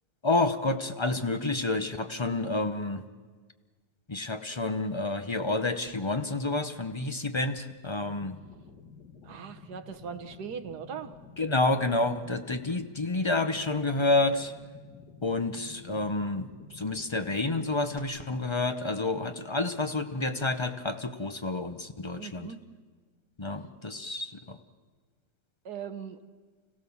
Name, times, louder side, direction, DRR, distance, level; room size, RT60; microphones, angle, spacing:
voice 1, 0.2-3.0 4.1-8.4 11.4-14.5 15.2-22.5 23.4-24.6, left 2 dB, 35° left, 8 dB, 0.4 m, -29 dB
sound 1, 8.0-18.0, left 5 dB, 65° left, 2.3 m, -51 dB
voice 2, 9.2-11.1 22.1-22.6 25.7-26.2, right 7 dB, 70° right, 9 dB, 1.7 m, -39 dB
29.5 x 16.0 x 7.1 m, 1.5 s
omnidirectional pair, 1.8 m